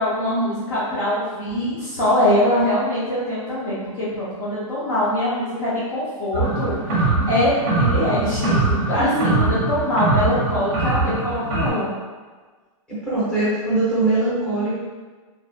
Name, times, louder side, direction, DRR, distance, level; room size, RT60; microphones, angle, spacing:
voice 1, 0.0-11.9, left 1 dB, 35° left, -9 dB, 0.6 m, -23 dB
sound 1, 6.3-11.7, right 3 dB, 35° right, 0.7 m, -22 dB
voice 2, 9.0-9.3 12.9-14.7, right 2 dB, 5° left, -13 dB, 0.8 m, -22 dB
2.6 x 2.3 x 2.4 m, 1.4 s
hypercardioid pair, 165°, 18 cm